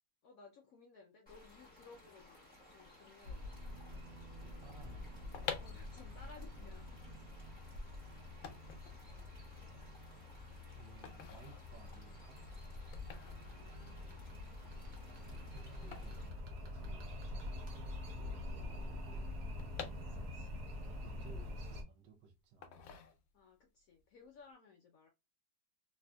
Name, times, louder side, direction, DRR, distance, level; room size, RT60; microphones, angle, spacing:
voice 1, 0.2-3.6 5.6-7.2 13.1-14.5 17.4-17.8 20.1-20.7 23.3-25.1, left 4 dB, 75° left, 0.8 m, -60 dB
sound 1, 1.3-16.3, left 1 dB, 5° left, 1.4 m, -60 dB
sound 2, 3.2-21.8, left 1 dB, 55° right, 1.0 m, -46 dB
voice 2, 4.4-5.3 8.7-8.8 9.4-9.8 10.8-12.4 14.6-14.9 15.3-17.1 18.1-19.3 21.0-22.9, right 5 dB, 75° right, 1.3 m, -60 dB
sound 3, 5.3-17.2 17.5-17.6 17.8-20.6 21.0-22.1 22.6-23.6 24.0-24.3, left 8 dB, 90° left, 1.3 m, -50 dB
3.3 x 2.7 x 2.2 m
omnidirectional pair, 2.0 m